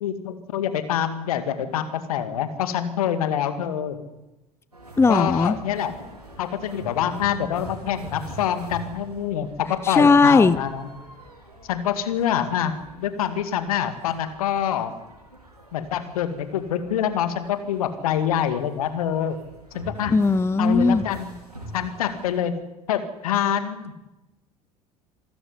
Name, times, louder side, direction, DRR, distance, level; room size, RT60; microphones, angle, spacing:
voice 1, 0.0-4.0 5.1-6.0 6.4-10.9 11.7-12.7 13.0-14.9 15.7-19.4 19.7-20.1 20.6-21.3 21.7-22.5 22.9-23.9, left 9 dB, 70° left, 10 dB, 2.3 m, -26 dB
sound 1, 4.7-22.4, right 1 dB, 90° right, 4.6 m, -43 dB
voice 2, 5.0-5.6 9.8-10.6 20.1-21.0, left 4 dB, 15° left, 17 dB, 0.8 m, -17 dB
26.5 x 13.0 x 9.9 m, 0.99 s
figure-of-eight pair, 65°, 19 cm